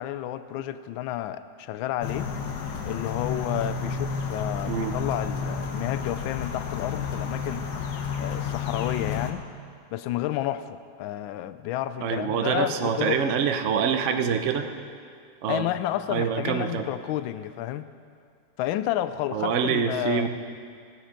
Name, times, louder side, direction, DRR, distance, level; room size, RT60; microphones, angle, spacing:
voice 1, 0.0-2.3 2.8-7.7 8.2-9.5 9.9-13.3 15.5-17.8 18.6-20.3, left 13 dB, 75° left, 13 dB, 1.3 m, -31 dB
sound 1, 2.0-9.3, left 5 dB, 60° left, 1.3 m, -31 dB
voice 2, 12.0-14.7 15.4-15.7 16.1-16.9 19.3-20.3, right 7 dB, 75° right, 6 dB, 0.6 m, -25 dB
17.0 x 8.9 x 5.1 m, 2.3 s
omnidirectional pair, 2.3 m